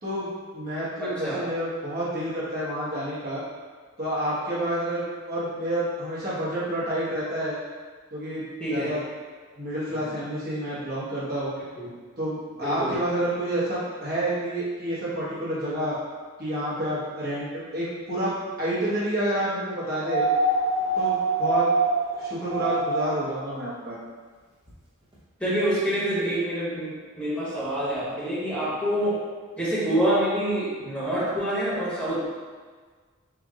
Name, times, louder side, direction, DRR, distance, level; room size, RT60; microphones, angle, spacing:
voice 1, 0.0-3.4 4.0-7.6 8.1-9.0 9.6-11.5 12.2-16.0 16.4-17.5 17.7-18.3 18.6-20.3 21.0-21.7 22.1-24.0, right 1 dB, 45° right, -10 dB, 1.2 m, -29 dB
voice 2, 1.0-1.4 8.6-8.9 9.9-10.1 11.8-11.9 12.6-12.9 25.4-29.2 29.6-32.3, right 1 dB, 5° left, -11 dB, 1.3 m, -26 dB
sound 1, 20.0-23.3 24.7-24.8, right 2 dB, 20° right, 0.8 m, -24 dB
4.6 x 2.5 x 3.7 m, 1.5 s
head